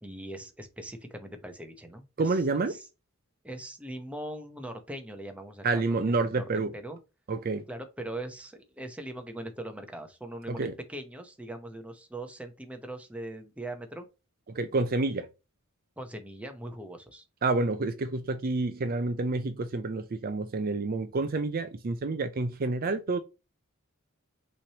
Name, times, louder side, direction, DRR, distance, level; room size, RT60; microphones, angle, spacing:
voice 1, 0.0-2.9 3.4-5.8 6.1-7.0 7.7-14.1 16.0-17.2, right 1 dB, 5° right, 0.8 m, -41 dB
voice 2, 2.2-2.8 5.6-6.7 7.3-7.6 10.5-10.7 14.5-15.3 17.4-23.2, right 3 dB, 40° right, 0.5 m, -28 dB
5.9 x 3.2 x 2.8 m
head